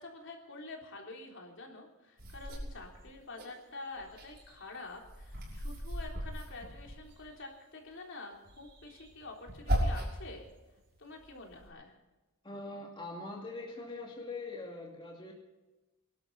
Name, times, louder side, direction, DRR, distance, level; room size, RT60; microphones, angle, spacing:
voice 1, 0.0-10.5 11.0-11.9, left 3 dB, 60° left, 0 dB, 3.6 m, -47 dB
sound 1, 2.2-3.5 3.9-7.4 8.4-10.3 10.8-11.7, equal, 45° right, 6.1 m, -37 dB
voice 2, 12.4-15.3, left 2 dB, 25° left, -1 dB, 2.3 m, -42 dB
24.5 x 12.5 x 4.1 m, 1.1 s
head